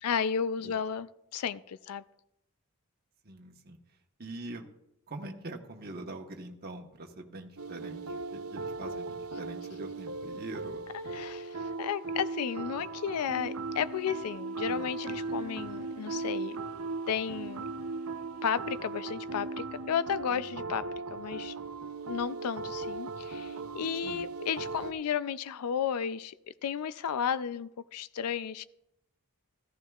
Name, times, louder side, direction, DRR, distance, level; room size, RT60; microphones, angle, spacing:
voice 1, 0.0-2.0 10.9-16.6 17.1-17.6 18.4-20.9 21.1-21.5 22.1-26.3 26.6-28.6, left 7 dB, 85° left, 15 dB, 0.4 m, -33 dB
voice 2, 3.2-3.8 4.2-4.7 5.1-10.8 14.6-14.9 20.3-20.7 24.0-24.2, right 2 dB, 45° right, 2 dB, 1.1 m, -44 dB
sound 1, 7.6-24.9, right 3 dB, 75° right, 0.6 m, -38 dB
14.5 x 14.0 x 2.4 m, 0.82 s
head